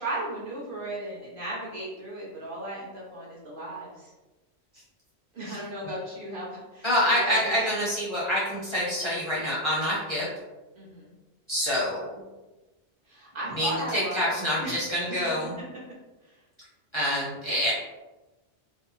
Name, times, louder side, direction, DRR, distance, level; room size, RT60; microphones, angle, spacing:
voice 1, 0.0-4.1 5.3-6.9 7.2-7.5 10.8-11.1 13.1-14.3 14.6-14.8 16.3-16.4, right 1 dB, 55° right, -5 dB, 0.8 m, -36 dB
voice 2, 6.8-10.3 11.5-12.1 13.5-15.6 16.9-17.7, equal, 30° left, -8 dB, 0.6 m, -26 dB
2.6 x 2.1 x 2.9 m, 1.1 s
omnidirectional pair, 1.2 m